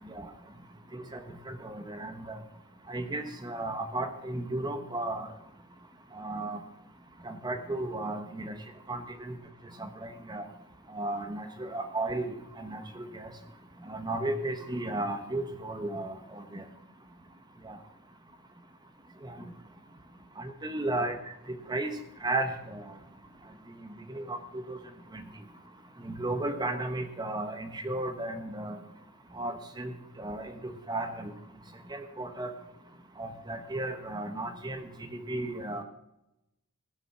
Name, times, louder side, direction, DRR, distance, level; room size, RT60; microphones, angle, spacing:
voice 1, 0.9-2.4 2.9-5.3 6.1-6.6 7.2-8.6 8.9-9.4 9.8-10.5 10.9-13.3 13.9-16.6 17.6-17.8 19.2-19.5 20.4-21.2 21.5-21.9 22.2-22.8 24.1-24.8 25.1-25.2 26.0-28.8 29.3-31.3 31.9-32.5 33.2-35.8, right 2 dB, 20° right, 7 dB, 1.0 m, -34 dB
16.0 x 7.1 x 5.9 m, 0.88 s
head